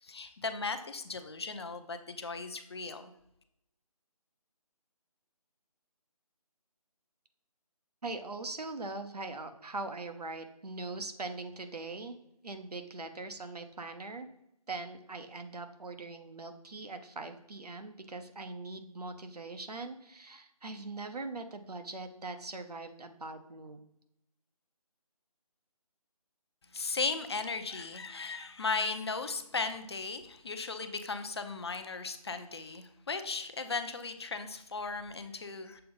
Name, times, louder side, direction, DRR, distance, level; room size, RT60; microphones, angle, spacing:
voice 1, 0.0-3.1 26.7-35.8, left 4 dB, 40° left, 8 dB, 0.5 m, -36 dB
voice 2, 8.0-12.2 12.4-14.3 14.7-23.8, right 3 dB, 90° right, 7 dB, 0.9 m, -41 dB
6.7 x 3.8 x 3.7 m, 0.81 s
figure-of-eight pair, 160°, 20 cm